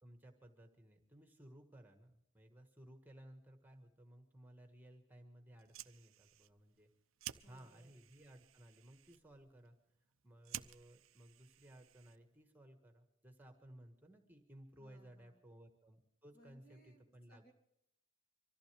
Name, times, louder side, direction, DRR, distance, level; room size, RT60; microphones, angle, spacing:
voice 1, 0.0-6.9 7.4-9.8 10.2-17.5, right 1 dB, 10° right, 4 dB, 1.5 m, -59 dB
Fire, 5.5-12.4, right 12 dB, 75° right, 0.6 m, -54 dB
voice 2, 7.4-8.0 14.8-15.4 16.3-17.5, equal, 45° left, 2 dB, 3.0 m, -66 dB
24.5 x 14.5 x 3.4 m, 0.80 s
head